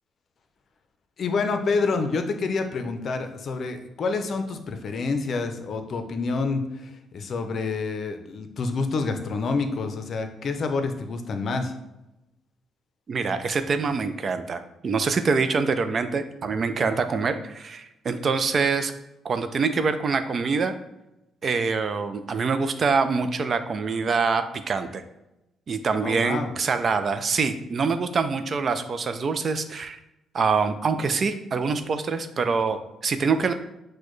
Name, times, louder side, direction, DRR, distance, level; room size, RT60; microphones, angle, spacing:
voice 1, 1.2-11.7 26.0-26.5, left 4 dB, 55° left, 7 dB, 0.5 m, -28 dB
voice 2, 13.1-18.9 19.2-20.8 21.4-25.0 25.7-30.0 30.3-33.5, right 4 dB, 45° right, 10 dB, 0.4 m, -25 dB
6.1 x 2.2 x 3.1 m, 0.92 s
cardioid pair, 90°, 0 cm